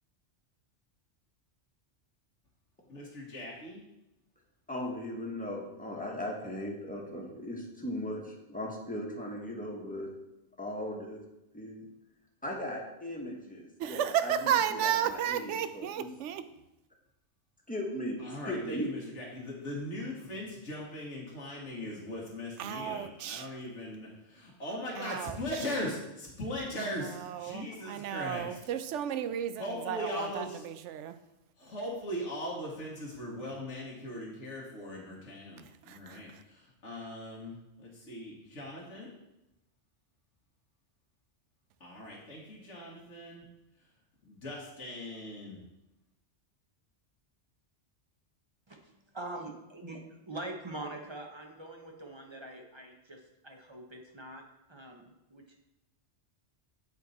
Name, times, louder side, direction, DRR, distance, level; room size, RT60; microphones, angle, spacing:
voice 1, 2.9-3.8 18.2-28.6 29.6-30.6 31.6-39.1 41.8-43.5 44.2-45.6, left 1 dB, 85° left, -4 dB, 1.7 m, -39 dB
voice 2, 4.7-10.1 10.6-11.2 11.5-11.9 12.4-16.1 17.7-18.2 18.4-18.9, left 1 dB, 5° left, -1 dB, 1.2 m, -38 dB
voice 3, 13.8-16.4 22.6-23.5 25.0-25.4 27.0-31.2 35.9-36.2, right 9 dB, 85° right, 11 dB, 0.9 m, -33 dB
voice 4, 49.1-50.0 50.3-54.4 54.7-55.0 55.3-55.6, right 2 dB, 25° right, 2 dB, 0.9 m, -43 dB
8.0 x 4.5 x 4.1 m, 0.90 s
omnidirectional pair, 1.2 m